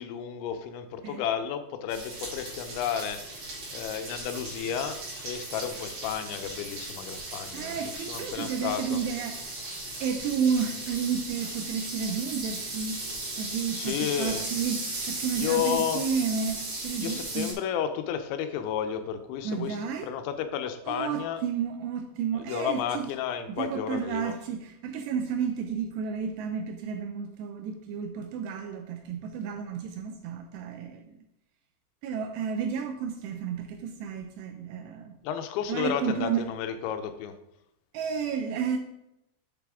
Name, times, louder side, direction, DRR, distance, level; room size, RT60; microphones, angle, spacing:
voice 1, 0.0-3.2 3.7-9.0 13.8-14.5 15.4-16.0 17.0-19.8 20.0-21.4 22.3-24.4 35.2-37.4, left 9 dB, 90° left, 8 dB, 3.0 m, -32 dB
sound 1, 1.9-17.5, right 2 dB, 55° right, 4.2 m, -37 dB
voice 2, 7.5-9.6 10.0-13.0 13.4-17.5 19.4-20.1 20.9-23.1 23.5-31.2 32.0-35.2 35.7-36.5 37.9-38.8, right 6 dB, 80° right, 6 dB, 2.6 m, -31 dB
8.1 x 6.9 x 3.6 m, 0.85 s
omnidirectional pair, 5.2 m